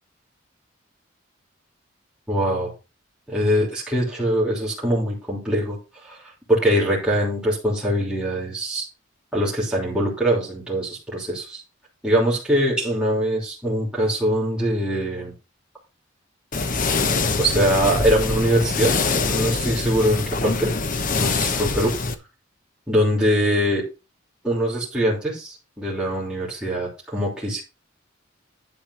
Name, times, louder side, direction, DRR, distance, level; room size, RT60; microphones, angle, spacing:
voice 1, 2.3-2.7 3.3-8.8 9.3-11.6 12.0-15.3 17.4-18.9 19.3-20.7 21.2-21.9 22.9-23.8 24.4-27.6, equal, 5° right, -6 dB, 3.0 m, -23 dB
sound 1, 16.5-22.1, left 3 dB, 40° left, 0.9 m, -24 dB
10.5 x 4.4 x 6.2 m, 0.29 s
head